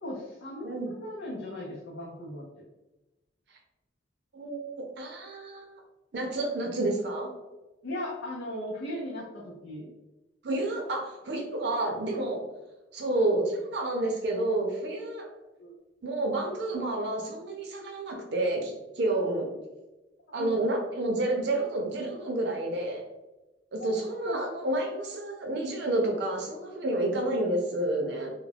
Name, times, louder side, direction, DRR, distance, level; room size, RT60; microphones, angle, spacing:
voice 1, 0.0-2.7 7.8-9.9 15.6-15.7 20.4-20.6 23.8-24.0 24.2-24.4 27.4-27.6, left 1 dB, 75° left, -5 dB, 0.5 m, -37 dB
voice 2, 4.3-5.7 6.1-7.3 10.4-12.4 12.9-15.3 16.0-19.5 20.3-23.0 23.7-28.3, right 2 dB, 60° right, 1 dB, 0.5 m, -29 dB
2.3 x 2.1 x 3.2 m, 1.1 s
head